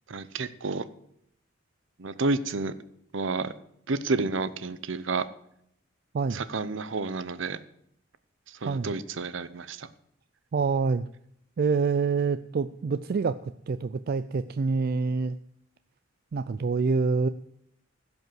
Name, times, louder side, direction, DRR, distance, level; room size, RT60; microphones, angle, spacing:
voice 1, 0.1-0.8 2.0-2.7 3.1-3.5 3.9-5.3 6.3-7.6 8.6-9.9, right 3 dB, 65° right, 14 dB, 0.7 m, -30 dB
voice 2, 10.5-11.1 11.6-15.4 16.3-17.3, right 4 dB, 50° right, 11 dB, 0.3 m, -26 dB
16.0 x 5.4 x 7.6 m, 0.73 s
head